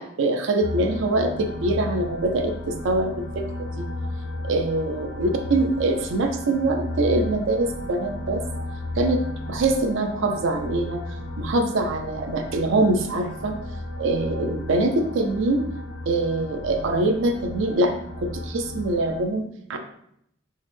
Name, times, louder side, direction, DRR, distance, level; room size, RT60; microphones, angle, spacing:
voice 1, 0.0-3.9 4.4-8.4 9.0-11.0 11.4-13.5 14.0-15.6 16.1-19.8, right 2 dB, 65° right, 6 dB, 0.4 m, -24 dB
sound 1, 0.6-19.2, left 1 dB, 65° left, 0.4 m, -34 dB
3.3 x 2.0 x 3.2 m, 0.73 s
head